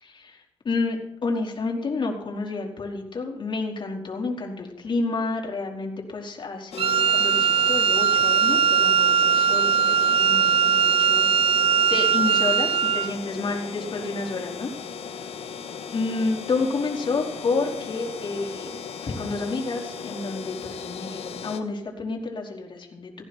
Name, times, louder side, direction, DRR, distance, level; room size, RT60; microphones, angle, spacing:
voice 1, 0.0-11.2 11.5-14.7 15.9-18.7 19.0-23.3, left 3 dB, 45° left, 0 dB, 4.4 m, -30 dB
sound 1, 6.7-21.6, left 6 dB, 70° left, 1.8 m, -37 dB
Wind instrument woodwind instrument, 6.8-13.1, right 7 dB, 55° right, 0.6 m, -20 dB
18.5 x 15.0 x 4.5 m, 0.82 s
cardioid pair, 85°, 11 cm